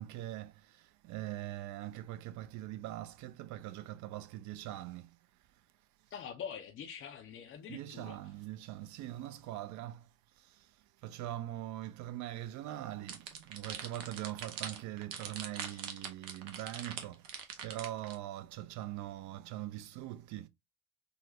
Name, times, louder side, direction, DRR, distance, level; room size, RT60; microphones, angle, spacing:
voice 1, 0.0-5.1 7.7-10.1 10.5-10.6 11.0-17.3 17.6-20.5, right 14 dB, 45° right, 0.5 m, -42 dB
voice 2, 6.1-8.2 15.7-15.8, left 7 dB, 30° left, 0.5 m, -45 dB
sound 1, 13.1-18.1, right 7 dB, 65° right, 0.8 m, -42 dB
3.9 x 2.1 x 2.6 m
hypercardioid pair, 65°, 41 cm